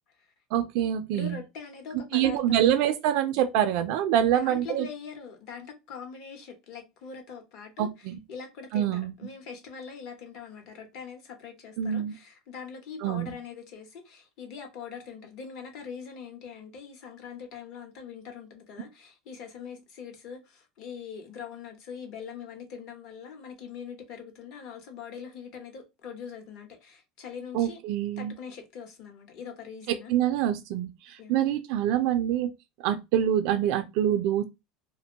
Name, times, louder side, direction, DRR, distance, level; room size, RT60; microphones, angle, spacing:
voice 1, 0.5-1.4 2.1-4.9 7.8-8.2 8.7-9.1 11.8-12.1 13.0-13.3 27.5-28.3 29.9-32.5 32.8-34.4, right 10 dB, 60° right, 0.3 m, -25 dB
voice 2, 1.1-2.6 4.3-27.8 28.2-30.1 31.2-31.3, left 6 dB, 55° left, 0.9 m, -42 dB
2.5 x 2.2 x 2.8 m
supercardioid pair, 150°, 0 cm